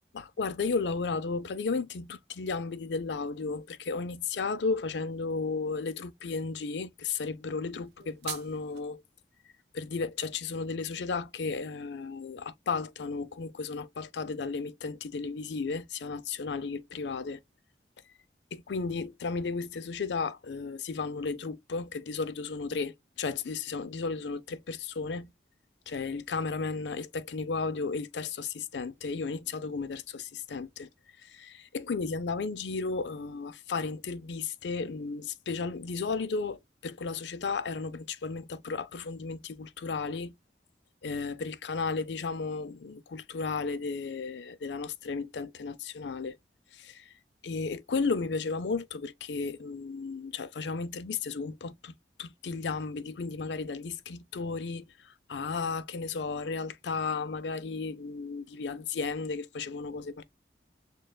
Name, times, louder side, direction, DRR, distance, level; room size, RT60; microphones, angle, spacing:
voice 1, 0.1-9.0 9.7-17.4 18.5-25.3 25.9-30.9 31.2-40.3 41.0-46.4 46.7-47.1 47.4-51.9 52.2-54.9 55.3-60.2, left 4 dB, 85° left, 0.5 m, -34 dB
sound 1, 7.8-8.8, right 12 dB, 70° right, 0.4 m, -42 dB
6.4 x 2.3 x 2.2 m
head